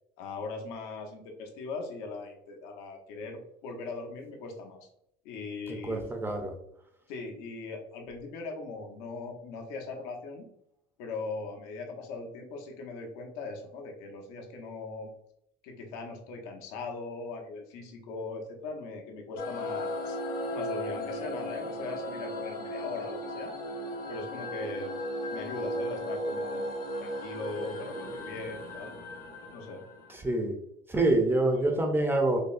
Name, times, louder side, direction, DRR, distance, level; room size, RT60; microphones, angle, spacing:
voice 1, 0.2-4.9 5.2-6.0 7.1-10.5 11.0-15.1 15.6-20.2 20.5-23.5 24.1-25.0 25.3-28.9 29.5-29.8 31.5-31.6, left 3 dB, 85° left, 2 dB, 0.8 m, -40 dB
voice 2, 5.7-6.5 30.1-30.6 30.9-32.4, right 2 dB, 10° right, 3 dB, 0.4 m, -26 dB
sound 1, 19.4-30.3, left 1 dB, 45° left, 0.8 m, -36 dB
5.3 x 2.0 x 2.4 m, 0.73 s
cardioid pair, 160°, 21 cm